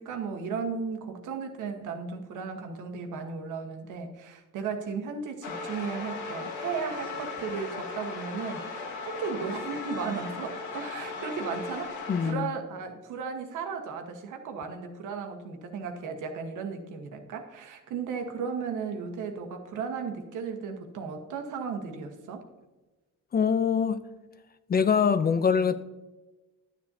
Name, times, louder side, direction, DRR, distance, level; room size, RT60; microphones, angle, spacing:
voice 1, 0.0-8.7 9.1-11.9 12.2-22.4, right 5 dB, 85° right, 1.3 m, -35 dB
sound 1, 5.4-12.3, left 4 dB, 80° left, 1.4 m, -37 dB
voice 2, 12.1-12.5 23.3-24.0 24.7-25.8, left 6 dB, 30° left, 0.5 m, -24 dB
11.5 x 7.4 x 2.7 m
cardioid pair, 90°, 30 cm